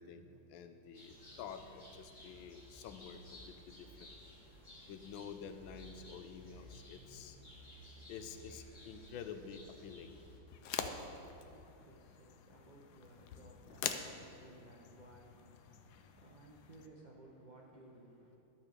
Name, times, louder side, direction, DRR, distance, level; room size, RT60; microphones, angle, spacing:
voice 1, 0.0-4.1 4.9-7.4 8.1-10.2, left 7 dB, 90° left, 8 dB, 1.4 m, -49 dB
sound 1, 0.9-10.4, equal, 25° left, 1.3 m, -56 dB
sound 2, 10.5-16.9, left 8 dB, 70° left, 1.0 m, -45 dB
voice 2, 11.2-18.4, right 2 dB, 80° right, -2 dB, 0.4 m, -59 dB
12.0 x 4.4 x 6.5 m, 3.0 s
omnidirectional pair, 2.1 m